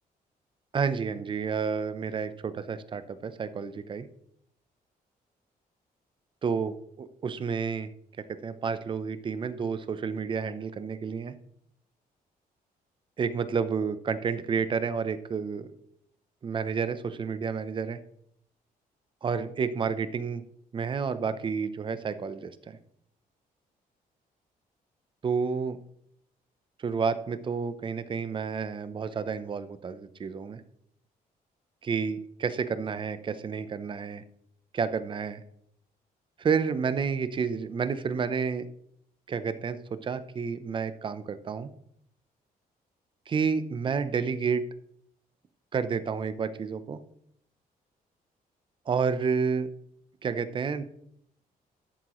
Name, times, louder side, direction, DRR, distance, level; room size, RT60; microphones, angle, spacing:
voice 1, 0.7-4.1 6.4-7.9 8.3-11.3 13.2-15.7 16.4-18.0 19.2-20.4 20.7-22.8 25.2-25.8 26.8-30.6 31.8-34.2 34.7-35.4 36.4-38.7 39.3-41.7 43.3-44.6 45.7-47.0 48.9-49.7 50.2-50.8, right 5 dB, 35° right, 13 dB, 0.6 m, -30 dB
12.5 x 7.8 x 3.0 m, 0.71 s
cardioid pair, 160°, 15 cm